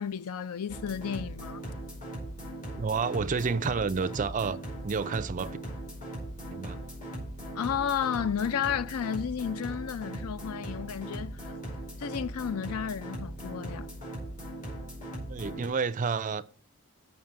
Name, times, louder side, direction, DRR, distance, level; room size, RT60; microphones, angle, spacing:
voice 1, 0.0-1.6 7.6-11.5 12.0-13.9, left 8 dB, 80° left, 0.5 m, -32 dB
sound 1, 0.7-15.7, right 1 dB, 35° left, 4.7 m, -39 dB
voice 2, 2.8-4.6 4.8-5.6 6.5-6.8 15.3-16.4, right 5 dB, 35° right, 0.4 m, -30 dB
7.3 x 5.8 x 7.5 m
head